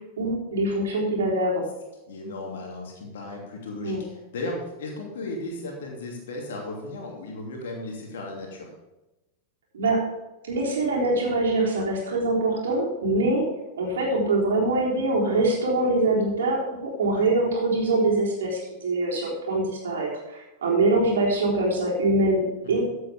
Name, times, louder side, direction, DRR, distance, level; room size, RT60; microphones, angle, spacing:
voice 1, 0.2-1.6 3.8-4.0 9.7-10.0 10.5-13.4 13.8-22.8, right 2 dB, 65° right, -3 dB, 3.9 m, -24 dB
voice 2, 2.1-8.7 17.1-17.2 22.6-22.8, left 2 dB, 60° left, 0 dB, 2.8 m, -35 dB
15.0 x 8.0 x 3.6 m, 1.0 s
figure-of-eight pair, 90°, 0 cm